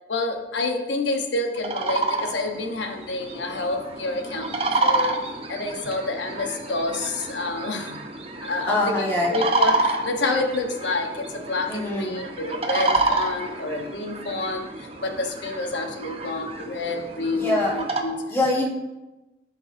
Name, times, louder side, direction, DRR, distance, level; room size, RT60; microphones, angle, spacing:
voice 1, 0.1-5.2 5.5-8.0 8.4-18.2, left 2 dB, 90° left, 4 dB, 0.9 m, -28 dB
sound 1, 1.6-18.0, right 2 dB, 35° right, 0.8 m, -29 dB
voice 2, 8.6-9.4 11.7-12.2 17.3-17.8 18.3-18.7, left 2 dB, 15° left, -4 dB, 1.5 m, -24 dB
14.0 x 5.5 x 2.6 m, 1.0 s
head